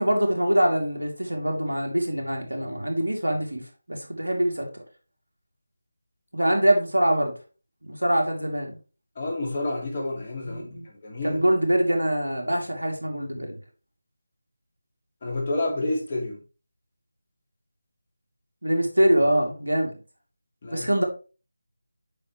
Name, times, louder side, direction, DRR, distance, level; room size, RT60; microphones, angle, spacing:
voice 1, 0.0-3.6 3.9-4.7 6.3-7.3 7.8-8.8 10.5-10.9 11.2-13.6 18.6-20.0 20.7-21.0, right 1 dB, 85° right, 2.8 m, -24 dB
voice 2, 9.2-11.4 15.2-16.4 20.6-20.9, left 2 dB, 35° left, 2.8 m, -29 dB
8.6 x 5.9 x 3.2 m
figure-of-eight pair, 160°, 0 cm